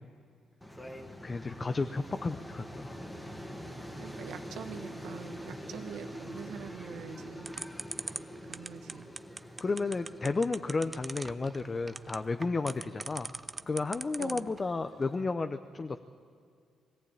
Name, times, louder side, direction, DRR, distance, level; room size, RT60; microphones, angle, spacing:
sound 1, 0.6-15.2, equal, 5° left, 1.9 m, -46 dB
voice 1, 1.2-2.9 9.6-13.3 13.7-16.0, left 3 dB, 30° left, 8 dB, 0.7 m, -32 dB
voice 2, 4.0-7.5 8.5-9.1 14.2-14.5, right 8 dB, 80° right, 6 dB, 1.5 m, -44 dB
sound 2, 7.4-14.6, right 3 dB, 25° right, 0.5 m, -39 dB
21.5 x 15.0 x 8.8 m, 2.3 s
cardioid pair, 90°, 0 cm